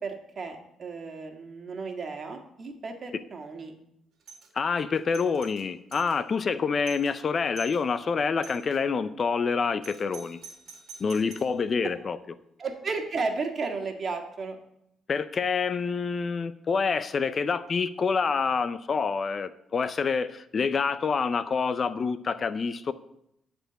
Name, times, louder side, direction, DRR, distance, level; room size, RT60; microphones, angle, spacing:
voice 1, 0.0-3.7 12.6-14.6, right 4 dB, 45° right, 4 dB, 1.8 m, -34 dB
Doorbell, 4.2-4.5 4.9-6.2 6.6-6.7 6.8-7.1 7.5-7.8 8.4-8.8 9.8-11.6, right 5 dB, 70° right, 1.8 m, -47 dB
voice 2, 4.6-10.4 11.0-12.2 15.1-22.9, left 5 dB, 45° left, 14 dB, 0.5 m, -27 dB
11.0 x 4.4 x 7.9 m, 0.78 s
cardioid pair, 90°, 0 cm